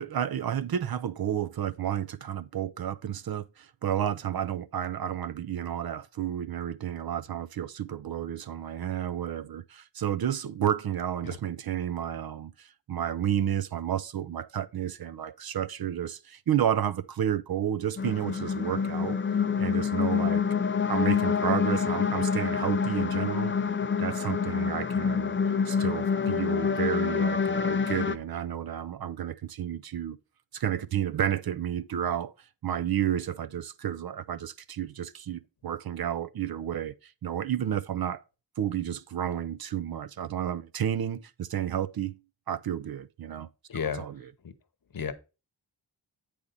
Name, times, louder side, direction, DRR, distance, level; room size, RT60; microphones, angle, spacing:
voice 1, 0.0-19.2 19.6-20.4 20.9-23.6 24.0-25.4 25.6-30.2 30.5-32.3 32.6-38.2 38.6-42.2 42.5-43.5 43.7-44.3, right 10 dB, 55° right, 0.5 m, -31 dB
sound 1, 18.0-28.2, left 6 dB, 30° left, 0.4 m, -27 dB
voice 2, 43.7-44.0 44.9-45.1, left 7 dB, 50° left, 0.9 m, -31 dB
8.5 x 5.1 x 4.0 m
wide cardioid pair, 155°, 44 cm